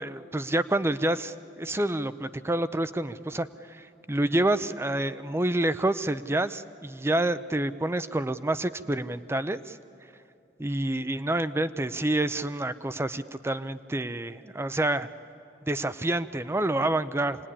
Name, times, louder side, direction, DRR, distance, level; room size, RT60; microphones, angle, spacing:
voice 1, 0.0-9.8 10.6-15.1 15.7-17.4, right 1 dB, 15° right, 13 dB, 0.5 m, -28 dB
26.0 x 19.0 x 10.0 m, 2.6 s
head